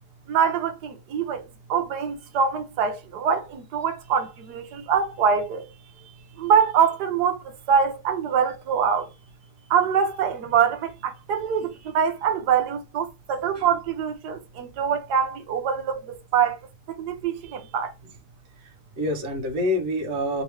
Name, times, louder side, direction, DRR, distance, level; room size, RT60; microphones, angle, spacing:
voice 1, 0.3-1.4 1.7-5.6 6.4-9.1 9.7-16.6 17.0-17.9, right 7 dB, 65° right, 1.3 m, -24 dB
voice 2, 18.6-20.4, left 1 dB, 45° right, 1.2 m, -27 dB
3.6 x 3.0 x 3.3 m
omnidirectional pair, 2.0 m